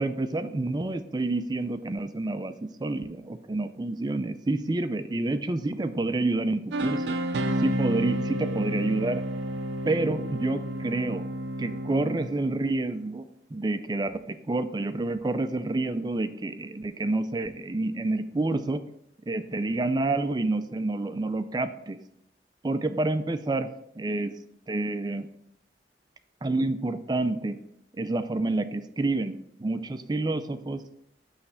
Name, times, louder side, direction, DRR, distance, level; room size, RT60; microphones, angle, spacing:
voice 1, 0.0-2.5 2.8-7.2 7.6-9.2 9.9-11.3 11.6-13.2 13.5-18.8 19.3-22.0 22.6-23.7 24.0-24.3 24.7-25.3 26.4-27.6 28.0-30.8, right 2 dB, 25° right, 10 dB, 0.4 m, -28 dB
sound 1, 6.7-12.6, right 1 dB, 80° right, 0.5 m, -30 dB
8.2 x 3.2 x 5.5 m, 0.76 s
head